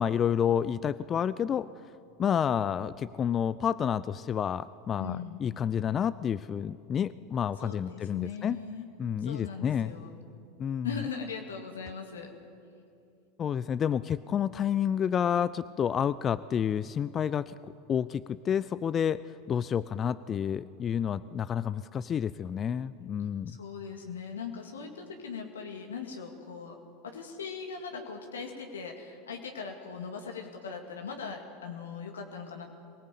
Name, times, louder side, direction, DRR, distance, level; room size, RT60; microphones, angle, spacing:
voice 1, 0.0-1.7 2.2-8.6 9.0-9.9 10.6-11.0 13.4-19.2 19.5-23.6, left 8 dB, 30° left, 16 dB, 0.5 m, -29 dB
voice 2, 5.0-5.4 7.6-8.9 9.2-10.2 10.8-12.3 23.5-26.8 27.0-32.6, left 5 dB, 80° left, 2 dB, 2.1 m, -40 dB
23.0 x 18.5 x 8.4 m, 2.6 s
figure-of-eight pair, 85°, 0 cm